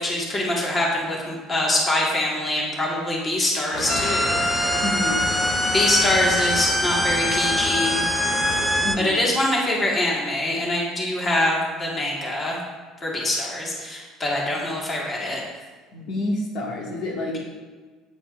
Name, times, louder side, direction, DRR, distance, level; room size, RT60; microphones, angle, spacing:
voice 1, 0.0-4.7 5.7-8.0 9.0-12.6 13.0-15.4, left 1 dB, 20° left, -3 dB, 1.7 m, -24 dB
sound 1, 3.7-8.9, left 1 dB, 75° left, 2.7 m, -29 dB
sound 2, 3.9-9.0, equal, 5° left, 0.4 m, -24 dB
voice 2, 4.8-5.2 8.8-9.2 15.9-17.4, left 2 dB, 60° left, -2 dB, 2.0 m, -28 dB
11.0 x 9.2 x 2.6 m, 1.4 s
cardioid pair, 150°, 0 cm